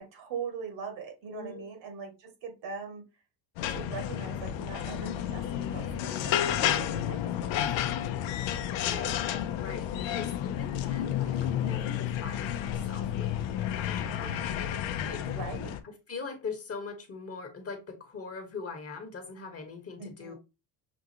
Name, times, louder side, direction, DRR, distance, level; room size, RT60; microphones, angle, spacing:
voice 1, 0.0-3.0 3.7-7.6 15.2-15.8 20.0-20.4, right 5 dB, 70° right, 1.8 m, -41 dB
voice 2, 1.3-1.7 8.7-9.2 9.6-13.3 13.7-14.4 15.0-15.2 16.1-20.4, left 4 dB, 30° left, 1.1 m, -41 dB
sound 1, 3.6-15.8, left 10 dB, 80° left, 0.7 m, -31 dB
6.2 x 2.4 x 2.7 m
cardioid pair, 115°, 45 cm